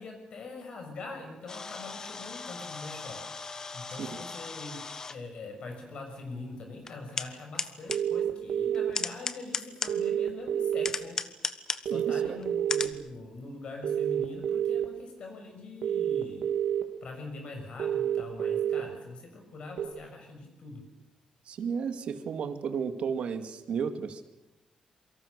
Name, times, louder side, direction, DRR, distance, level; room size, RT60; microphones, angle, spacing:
voice 1, 0.0-3.2 3.7-4.8 5.1-11.2 11.8-16.5 17.0-20.8, left 3 dB, 50° left, 3 dB, 6.6 m, -43 dB
sound 1, 1.5-5.2 6.2-6.3 6.9-7.3 7.5-8.0 8.7-10.1 10.7-11.9 12.4-12.5 12.7-12.9, left 4 dB, 30° left, 1.2 m, -36 dB
sound 2, 7.9-8.9 9.9-10.9 11.9-12.9 13.8-14.8 15.8-16.8 17.8-18.8 19.8-19.9, right 10 dB, 90° right, 3.2 m, -28 dB
voice 2, 11.9-12.4 21.5-24.2, right 6 dB, 60° right, 7 dB, 2.2 m, -33 dB
27.5 x 24.5 x 6.8 m, 0.96 s
wide cardioid pair, 175°, 2 cm